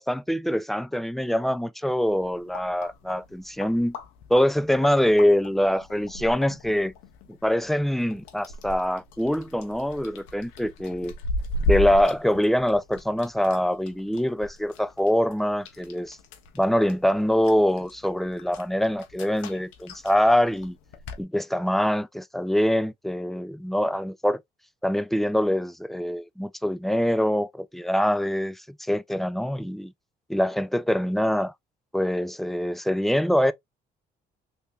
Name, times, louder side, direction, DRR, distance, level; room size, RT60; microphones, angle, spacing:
voice 1, 0.0-4.0 4.3-6.9 7.4-11.1 11.7-16.2 16.5-20.8 21.2-24.4 24.8-28.6 28.9-29.9 30.3-31.5 31.9-33.5, equal, ahead, 0.3 m, -24 dB
sound 1, 2.1-21.2, left 2 dB, 85° left, 0.7 m, -37 dB
3.4 x 2.7 x 2.8 m
hypercardioid pair, 55°, 20 cm